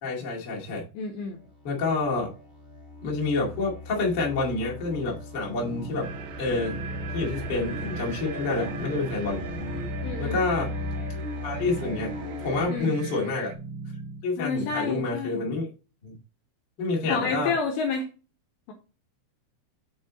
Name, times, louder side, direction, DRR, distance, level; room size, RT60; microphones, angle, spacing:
voice 1, 0.0-0.8 1.6-2.3 3.0-6.1 6.4-6.8 7.1-9.4 10.2-10.7 11.4-13.5 14.2-15.7 16.0-16.1 16.8-17.5, left 3 dB, 55° left, -3 dB, 1.2 m, -28 dB
voice 2, 1.0-1.4 10.0-10.4 12.7-12.9 14.4-15.4 17.1-18.1 18.7-18.8, left 4 dB, 85° left, 4 dB, 2.6 m, -29 dB
sound 1, 1.3-12.7, left 2 dB, 25° left, 0.6 m, -37 dB
sound 2, 5.4-14.2, right 3 dB, 70° right, 1.9 m, -39 dB
sound 3, 6.0-13.6, right 9 dB, 85° right, 2.6 m, -41 dB
7.1 x 4.5 x 3.9 m, 0.34 s
omnidirectional pair, 5.9 m